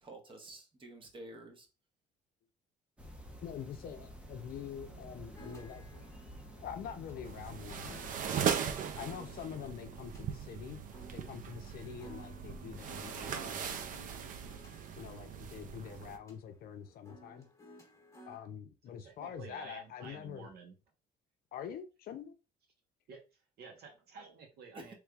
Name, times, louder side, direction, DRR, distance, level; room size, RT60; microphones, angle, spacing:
voice 1, 0.0-1.7 9.3-9.7 24.7-24.9, right 2 dB, 30° right, 4 dB, 1.0 m, -50 dB
sound 1, 3.0-8.1, right 1 dB, 5° right, 0.6 m, -50 dB
voice 2, 3.4-5.9 6.6-8.1 9.0-10.8 11.1-13.8 15.0-17.5 18.3-20.5 21.5-22.4, left 8 dB, 60° left, 8 dB, 0.5 m, -45 dB
sound 2, 4.9-18.4, equal, 15° left, 1.2 m, -57 dB
sound 3, 7.2-16.2, right 7 dB, 50° right, 0.5 m, -39 dB
voice 3, 19.0-20.7 23.1-23.2 23.6-24.9, right 5 dB, 70° right, 2 dB, 1.1 m, -51 dB
3.2 x 3.1 x 2.3 m, 0.30 s
cardioid pair, 110°, 17 cm